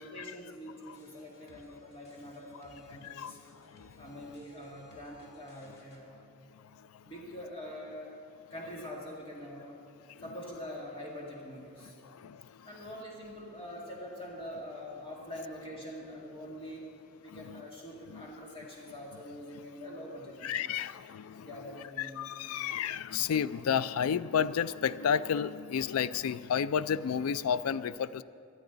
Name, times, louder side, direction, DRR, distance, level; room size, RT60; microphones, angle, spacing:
voice 1, 0.0-3.4 4.0-6.2 7.0-8.2 8.5-9.8 10.2-12.0 12.6-16.9 17.2-20.7 21.4-22.5, equal, 25° left, -3 dB, 2.0 m, -44 dB
sound 1, 0.9-6.0, left 1 dB, 50° left, 1.8 m, -60 dB
voice 2, 3.0-3.3 3.8-3.9 12.2-12.4 17.3-17.6 18.1-18.3 20.4-21.5 22.0-28.2, left 7 dB, 75° left, 16 dB, 0.3 m, -31 dB
18.5 x 12.0 x 3.9 m, 2.5 s
head